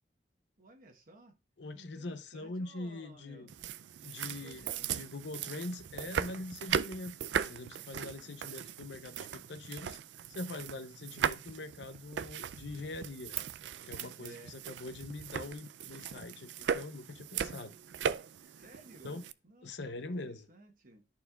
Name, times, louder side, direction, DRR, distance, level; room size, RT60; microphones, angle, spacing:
voice 1, 0.6-1.4 1.7-3.5 4.4-5.0 8.0-8.4 14.2-14.6 18.5-21.1, right 2 dB, 50° right, 1.1 m, -57 dB
voice 2, 1.6-3.5 4.0-4.6 4.9-10.0 10.3-13.3 13.8-17.7 19.0-19.2 19.6-20.5, left 2 dB, 75° left, 0.7 m, -43 dB
sound 1, 3.5-19.3, right 8 dB, 75° right, 0.4 m, -38 dB
13.5 x 4.5 x 2.3 m
head